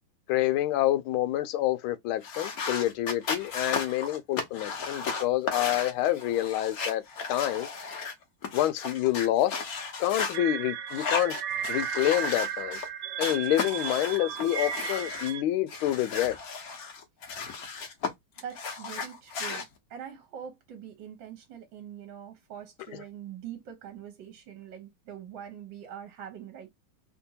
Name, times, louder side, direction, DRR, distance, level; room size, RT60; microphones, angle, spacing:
voice 1, 0.3-7.0 7.3-7.7 8.5-9.6 10.0-11.4 11.7-12.8 13.2-16.4, left 14 dB, 75° left, 1.4 m, -27 dB
sound 1, 2.2-10.4 10.9-12.9 13.2-15.3 15.7-18.1 18.4-19.6, left 5 dB, 60° left, 1.0 m, -35 dB
sound 2, 10.3-15.4, right 9 dB, 90° right, 1.5 m, -34 dB
voice 2, 18.4-26.7, right 9 dB, 65° right, 1.5 m, -43 dB
3.6 x 2.6 x 2.7 m
omnidirectional pair, 2.4 m